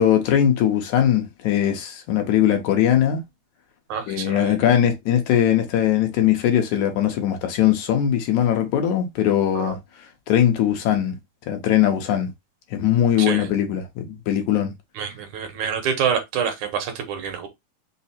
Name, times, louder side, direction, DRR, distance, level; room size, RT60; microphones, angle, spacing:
voice 1, 0.0-3.2 4.1-9.8 10.3-11.2 11.5-12.3 12.7-14.7, left 10 dB, 75° left, 2.1 m, -20 dB
voice 2, 3.9-4.5 9.6-9.7 13.2-13.5 15.0-17.5, right 7 dB, 75° right, 2.4 m, -27 dB
5.5 x 2.0 x 4.2 m
omnidirectional pair, 3.6 m